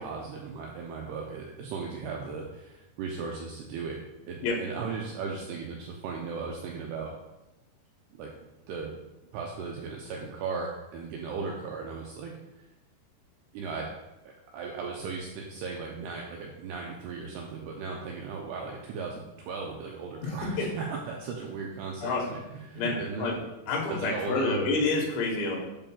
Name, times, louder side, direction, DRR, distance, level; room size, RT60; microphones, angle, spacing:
voice 1, 0.0-7.2 8.1-8.3 8.7-9.0 9.3-12.3 13.5-13.9 14.5-23.3 23.7-24.6, right 4 dB, 85° right, -1 dB, 2.3 m, -37 dB
voice 2, 20.2-20.7 22.0-22.2 22.7-23.3 23.7-25.6, left 3 dB, 90° left, -2 dB, 3.6 m, -28 dB
8.5 x 5.5 x 2.3 m, 1.0 s
omnidirectional pair, 5.2 m